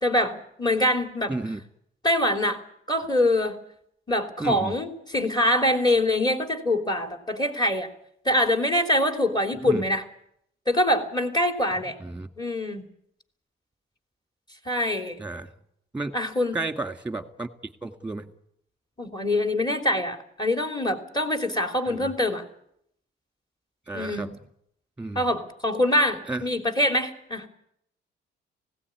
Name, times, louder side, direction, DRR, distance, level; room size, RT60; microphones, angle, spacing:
voice 1, 0.0-1.3 2.0-2.6 2.9-3.6 4.1-7.9 8.2-10.0 10.7-12.0 12.4-12.8 14.6-15.2 16.1-16.6 19.0-22.4 23.9-24.3 25.1-27.5, left 1 dB, 20° left, 5 dB, 3.3 m, -24 dB
voice 2, 1.3-1.6 4.4-4.8 9.6-9.8 11.8-12.3 15.2-15.5 15.9-16.1 16.5-17.5 17.8-18.3 21.9-22.1 23.9-24.3 25.0-25.3 26.3-26.4, right 2 dB, 5° right, 8 dB, 2.0 m, -32 dB
19.0 x 17.0 x 9.6 m, 0.74 s
cardioid pair, 90°, 20 cm